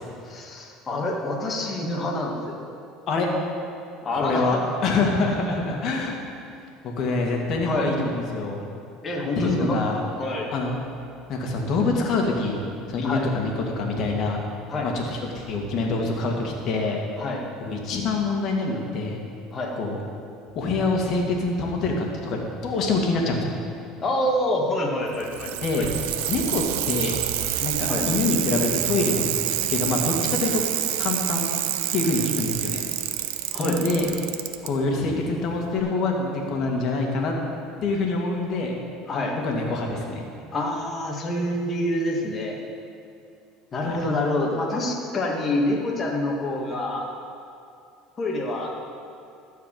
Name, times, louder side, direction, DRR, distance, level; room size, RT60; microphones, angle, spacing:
voice 1, 0.2-2.6 4.0-4.6 7.6-7.9 9.0-9.8 10.2-10.5 13.0-13.2 14.7-14.9 17.2-17.4 19.5-19.7 24.0-25.5 25.8-25.9 27.9-28.1 33.5-33.8 39.1-39.4 40.5-42.6 43.7-47.1 48.2-48.7, left 1 dB, 30° left, -1 dB, 1.9 m, -26 dB
voice 2, 4.1-6.2 6.8-8.6 9.4-10.0 10.5-10.7 11.3-12.6 12.9-14.4 14.8-17.0 17.6-19.2 19.8-20.0 20.5-23.5 25.6-25.9 26.3-27.2 27.6-30.6 31.0-31.5 31.9-32.8 33.6-34.1 34.6-37.3 37.8-38.7 39.3-40.3 43.7-44.0, left 3 dB, 55° left, 0 dB, 2.0 m, -25 dB
Bicycle, 25.1-34.7 35.8-35.9, right 12 dB, 85° right, 0.6 m, -27 dB
13.0 x 4.8 x 7.6 m, 2.4 s
supercardioid pair, 105°, 0 cm